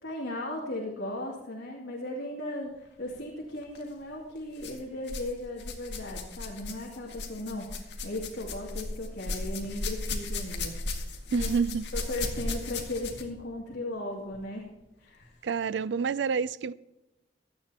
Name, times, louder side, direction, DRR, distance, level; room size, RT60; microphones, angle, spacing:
voice 1, 0.0-10.7 11.3-11.5 11.9-14.7 15.0-15.3, left 1 dB, 90° left, 2.6 m, -37 dB
sound 1, 3.6-3.8 4.6-5.3 5.6-13.4 14.3-14.4 15.2-15.3, left 2 dB, 70° left, 1.9 m, -36 dB
voice 2, 11.3-11.9 15.4-16.7, right 6 dB, 75° right, 0.4 m, -28 dB
17.0 x 12.5 x 2.9 m
head